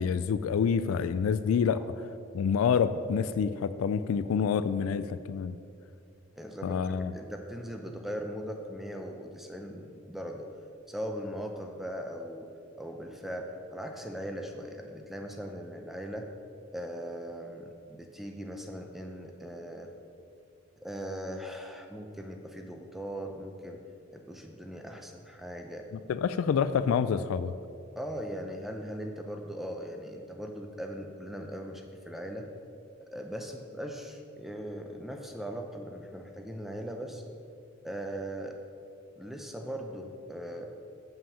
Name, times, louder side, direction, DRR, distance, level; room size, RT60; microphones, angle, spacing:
voice 1, 0.0-1.8 2.3-5.6 6.6-7.1 26.1-27.5, left 6 dB, 85° left, 13 dB, 0.3 m, -27 dB
voice 2, 6.3-10.5 10.9-12.5 12.8-16.3 16.7-19.9 20.8-23.8 24.1-25.9 28.0-32.5 33.0-37.2 37.8-38.6 39.2-40.7, equal, ahead, 3 dB, 0.5 m, -39 dB
7.4 x 5.7 x 7.0 m, 2.5 s
head